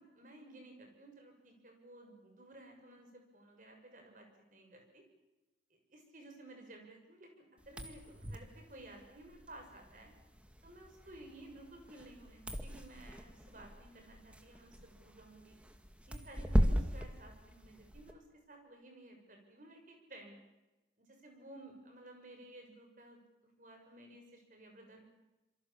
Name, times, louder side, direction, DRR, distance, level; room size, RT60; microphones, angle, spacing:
voice 1, 0.0-5.0 5.7-10.1 10.6-15.6 16.1-20.4 21.0-25.1, right 1 dB, 45° right, 3 dB, 6.7 m, -55 dB
sound 1, 7.6-18.1, equal, 5° right, 1.9 m, -38 dB
27.5 x 24.0 x 7.4 m, 1.0 s
head